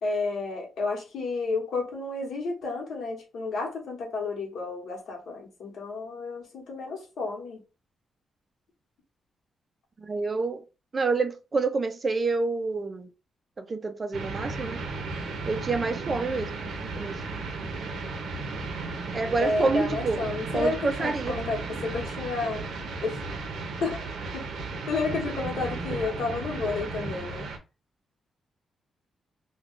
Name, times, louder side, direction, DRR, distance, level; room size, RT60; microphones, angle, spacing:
voice 1, 0.0-7.6 19.4-22.7 23.0-23.2 23.8-24.1 24.3-24.4 24.9-27.5, left 3 dB, 70° left, 1.0 m, -31 dB
voice 2, 10.0-10.6 10.9-13.1 13.6-14.8 15.5-16.5 16.8-17.1 19.1-20.2 20.5-21.4, right 3 dB, 30° right, 0.3 m, -28 dB
sound 1, 14.1-27.6, right 3 dB, 80° right, 0.6 m, -35 dB
2.4 x 2.1 x 3.5 m
wide cardioid pair, 155°, 0 cm